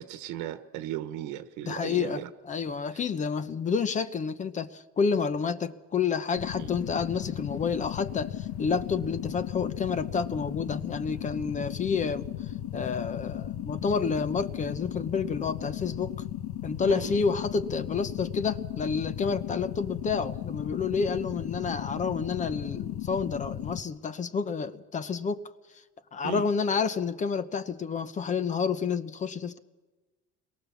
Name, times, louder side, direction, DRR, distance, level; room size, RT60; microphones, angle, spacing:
voice 1, 0.0-2.3 2.6-3.0 6.6-6.7 11.6-11.7 16.9-17.1 26.2-26.5, right 12 dB, 75° right, 10 dB, 1.4 m, -37 dB
voice 2, 1.7-2.2 2.5-16.2 16.6-25.4 25.7-25.8 26.1-29.6, left 5 dB, 25° left, 13 dB, 0.9 m, -29 dB
sound 1, 6.4-23.8, left 12 dB, 65° left, 1.3 m, -36 dB
29.0 x 22.5 x 7.2 m, 1.2 s
cardioid pair, 175°, 30 cm